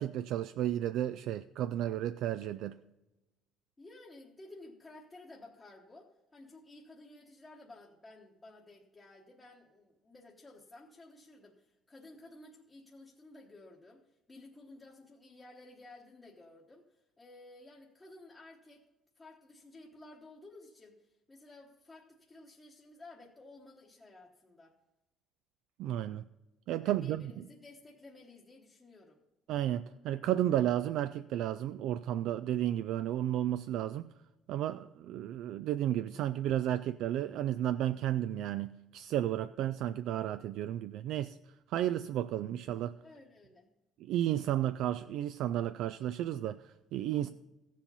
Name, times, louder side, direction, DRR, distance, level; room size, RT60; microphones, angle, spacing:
voice 1, 0.0-2.8 25.8-26.2 26.7-27.2 29.5-34.1 34.5-41.4 41.7-43.0 44.0-47.3, right 12 dB, 60° right, 0.3 m, -33 dB
voice 2, 3.8-18.8 19.2-24.8 26.8-29.2 43.0-43.7 47.1-47.3, left 2 dB, 15° left, 1.1 m, -54 dB
15.5 x 7.4 x 5.4 m
cardioid pair, 175°, 0 cm